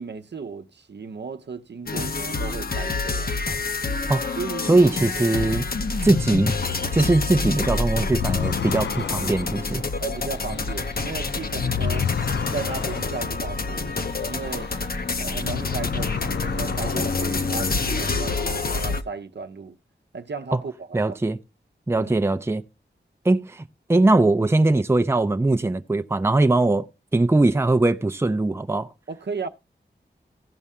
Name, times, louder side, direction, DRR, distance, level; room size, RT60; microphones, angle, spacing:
voice 1, 0.0-3.4 4.4-4.9 10.0-12.1 12.5-14.7 15.2-19.8 20.1-21.2 22.0-22.2 29.1-29.5, right 5 dB, 70° right, 0.7 m, -35 dB
sound 1, 1.9-19.0, left 3 dB, 55° left, 0.9 m, -27 dB
voice 2, 4.7-5.6 6.0-6.5 6.9-9.8 20.5-20.6 20.9-21.4 21.9-22.6 23.2-26.9 27.1-28.9, right 2 dB, 15° right, 0.5 m, -21 dB
sound 2, 8.0-14.9 15.3-18.0, left 7 dB, 70° left, 0.4 m, -31 dB
15.5 x 5.5 x 3.6 m
wide cardioid pair, 85°, 19 cm